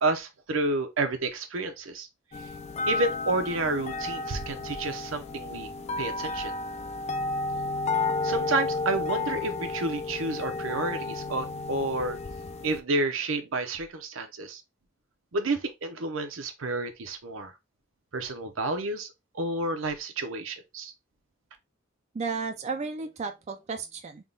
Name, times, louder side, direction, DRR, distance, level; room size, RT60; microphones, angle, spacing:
voice 1, 0.0-2.1 2.9-5.7 6.0-6.5 8.2-12.2 12.6-14.6 15.3-17.5 18.1-19.1 19.3-20.9, right 2 dB, 80° right, 0.7 m, -30 dB
sound 1, 2.3-12.8, left 3 dB, 35° left, 0.4 m, -32 dB
voice 2, 22.1-24.3, right 4 dB, 35° right, 0.3 m, -33 dB
3.6 x 2.3 x 3.7 m
head